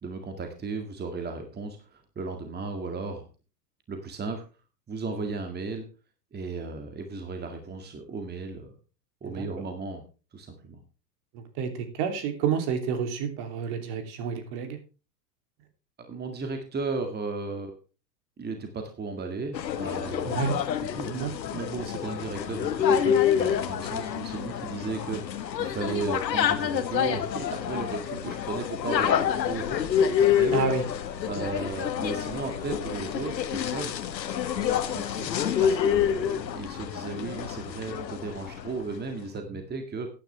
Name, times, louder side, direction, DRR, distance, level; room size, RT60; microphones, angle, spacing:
voice 1, 0.0-3.2 3.9-4.4 4.9-5.9 6.3-8.8 9.2-10.0 10.3-10.8 16.0-17.8 18.4-20.6 21.0-30.6 31.2-34.2 34.5-35.3 35.6-40.1, right 4 dB, 20° right, 5 dB, 2.0 m, -35 dB
voice 2, 11.3-14.8 20.2-20.6 21.1-21.3 30.5-30.8, right 6 dB, 50° right, 7 dB, 3.0 m, -29 dB
sound 1, 19.5-38.8, left 9 dB, 85° left, 1.4 m, -27 dB
14.0 x 10.0 x 3.3 m, 0.32 s
hypercardioid pair, 100°, 49 cm